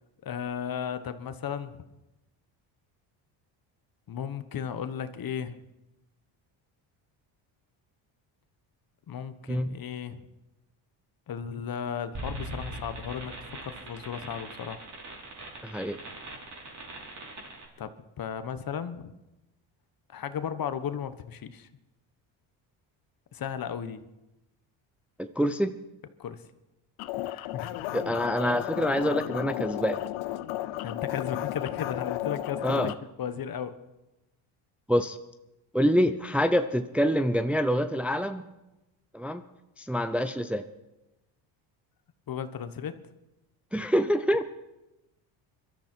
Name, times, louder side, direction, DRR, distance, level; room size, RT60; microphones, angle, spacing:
voice 1, 0.2-1.8 4.1-5.6 9.1-10.3 11.3-14.8 17.8-19.1 20.1-21.7 23.3-24.0 26.2-26.4 27.2-27.7 30.8-32.9 33.2-33.8 42.3-43.0, left 8 dB, 45° left, 11 dB, 1.3 m, -35 dB
sound 1, 12.1-17.6, right 1 dB, 35° right, 4.7 m, -41 dB
voice 2, 15.6-16.0 25.2-25.7 27.9-30.0 32.6-32.9 34.9-35.2 35.7-38.5 39.1-39.4 39.8-40.7 43.7-44.4, equal, 5° right, 9 dB, 0.7 m, -26 dB
sound 2, 27.0-32.9, left 15 dB, 75° left, 0.9 m, -33 dB
22.0 x 13.0 x 4.6 m, 0.98 s
supercardioid pair, 90°, 49 cm